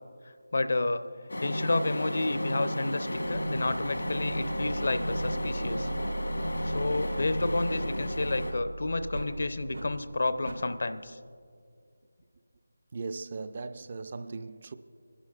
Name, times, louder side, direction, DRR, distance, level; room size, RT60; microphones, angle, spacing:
voice 1, 0.5-1.0 1.4-5.9 6.6-11.2, left 2 dB, 60° left, 0.5 m, -30 dB
sound 1, 1.3-8.5, equal, 80° left, 1.2 m, -33 dB
sound 2, 3.1-10.7, right 1 dB, 75° right, 1.0 m, -38 dB
sound 3, 3.2-6.6 7.1-7.2 7.6-7.8 8.5-8.7 9.1-9.3 9.7-9.9 10.4-10.6, right 1 dB, 90° right, 3.8 m, -46 dB
voice 2, 12.9-14.7, right 4 dB, 40° right, 0.3 m, -38 dB
26.0 x 11.0 x 2.4 m
figure-of-eight pair, 160°, 0 cm